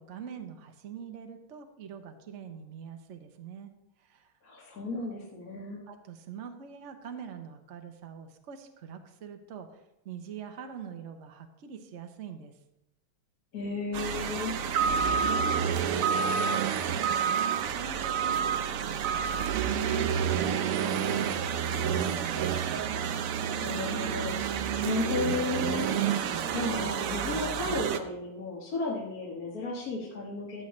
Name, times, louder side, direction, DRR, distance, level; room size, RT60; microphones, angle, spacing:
voice 1, 0.0-3.7 4.0-4.3 5.9-12.5 14.8-22.8, right 7 dB, 50° right, 6 dB, 0.9 m, -44 dB
voice 2, 4.4-5.8 13.5-14.5 23.6-25.9 26.5-30.6, left 3 dB, 50° left, -5 dB, 1.9 m, -34 dB
sound 1, 13.9-28.0, right 7 dB, 80° right, 0.7 m, -29 dB
14.5 x 7.9 x 3.2 m, 0.90 s
omnidirectional pair, 2.2 m